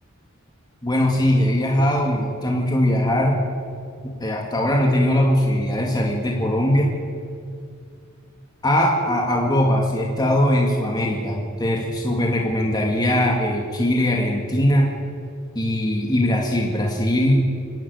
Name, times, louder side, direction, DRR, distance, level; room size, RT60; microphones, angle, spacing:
voice 1, 0.8-3.4 4.0-7.0 8.6-14.9 15.6-17.4, left 1 dB, 20° left, 0 dB, 2.2 m, -20 dB
25.0 x 12.0 x 9.6 m, 2.3 s
head